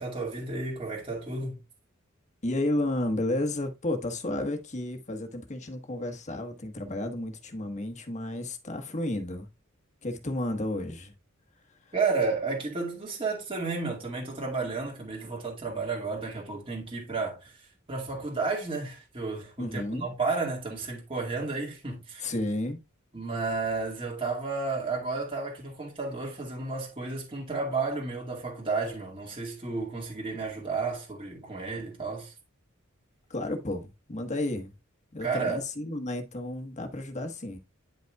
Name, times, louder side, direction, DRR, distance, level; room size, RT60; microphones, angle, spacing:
voice 1, 0.0-1.6 11.9-22.3 23.1-32.3 35.2-35.6, right 4 dB, 25° right, 2.0 m, -32 dB
voice 2, 2.4-9.5 10.0-11.1 19.6-20.1 22.2-22.8 33.3-34.7 35.1-37.6, left 1 dB, 35° left, 1.3 m, -32 dB
9.9 x 5.4 x 2.3 m
head